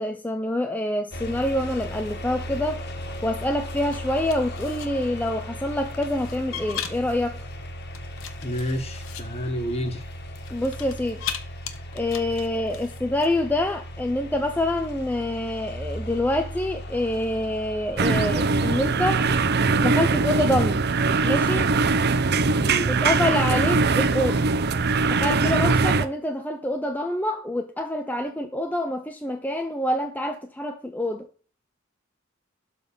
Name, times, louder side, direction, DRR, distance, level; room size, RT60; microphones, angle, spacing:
voice 1, 0.0-2.8 3.2-7.5 10.5-11.2 11.9-19.3 19.8-20.8 21.2-21.7 22.9-24.5 25.1-31.3, left 1 dB, 10° left, 0.7 m, -26 dB
sound 1, 1.1-19.5, equal, 55° left, 1.7 m, -37 dB
sound 2, 3.9-4.9 5.9-7.1 7.8-9.2 10.4-11.4 11.7-13.3, left 9 dB, 80° left, 1.3 m, -36 dB
voice 2, 8.4-10.1 22.6-22.9 25.6-25.7, equal, 30° left, 1.7 m, -29 dB
sound 3, 18.0-26.1, right 4 dB, 50° right, 0.7 m, -21 dB
12.0 x 4.2 x 6.9 m
head